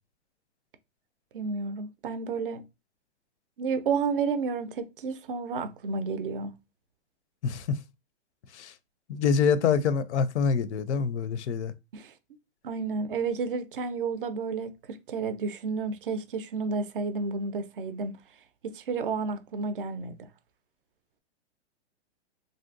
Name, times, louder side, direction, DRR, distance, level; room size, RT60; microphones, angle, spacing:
voice 1, 1.3-2.6 3.6-6.5 11.9-12.1 12.6-18.2 18.6-20.3, right 4 dB, 50° right, 0.4 m, -31 dB
voice 2, 7.4-7.8 8.5-8.7 9.1-11.7, left 6 dB, 75° left, 0.5 m, -26 dB
3.3 x 2.7 x 2.5 m
hypercardioid pair, 170°, 34 cm